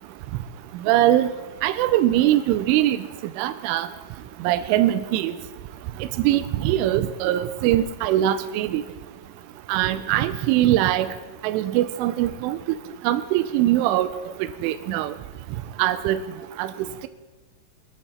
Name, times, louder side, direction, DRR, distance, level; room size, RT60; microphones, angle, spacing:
voice 1, 0.8-1.3 1.6-3.0 3.4-3.9 4.4-5.3 6.0-8.8 9.7-11.1 11.4-12.6 13.0-14.1 14.6-15.1 15.8-16.2 16.6-16.7, right 13 dB, 85° right, 11 dB, 3.1 m, -21 dB
22.0 x 12.5 x 4.3 m, 1.2 s
omnidirectional pair, 5.7 m